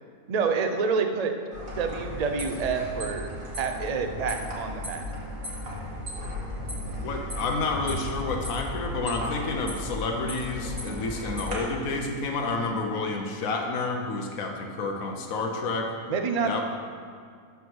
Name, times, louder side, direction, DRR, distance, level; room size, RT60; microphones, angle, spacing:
voice 1, 0.3-1.3 1.8-3.3 3.6-5.1 16.1-16.6, right 5 dB, 40° right, 6 dB, 0.6 m, -27 dB
sound 1, 1.5-11.5, left 1 dB, 65° right, 2.7 m, -35 dB
voice 2, 6.7-15.9 16.5-16.6, left 3 dB, 70° left, 1 dB, 1.4 m, -30 dB
13.5 x 4.8 x 6.2 m, 2.1 s
omnidirectional pair, 1.5 m